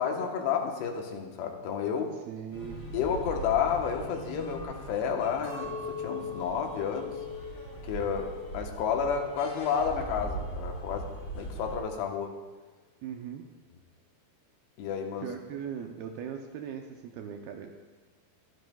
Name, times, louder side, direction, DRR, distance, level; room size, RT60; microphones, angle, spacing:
voice 1, 0.0-2.1 2.9-7.2 7.8-11.0 11.3-12.3 14.8-15.3, left 7 dB, 75° left, 2 dB, 3.0 m, -31 dB
voice 2, 2.3-2.8 13.0-13.4 15.2-17.7, right 8 dB, 80° right, 3 dB, 2.2 m, -39 dB
sound 1, 2.5-11.8, right 2 dB, 35° left, 3.7 m, -41 dB
Chink clink, 5.4-9.8 10.1-10.9, left 5 dB, 50° right, 4.5 m, -41 dB
22.5 x 11.5 x 2.3 m, 1.3 s
omnidirectional pair, 5.2 m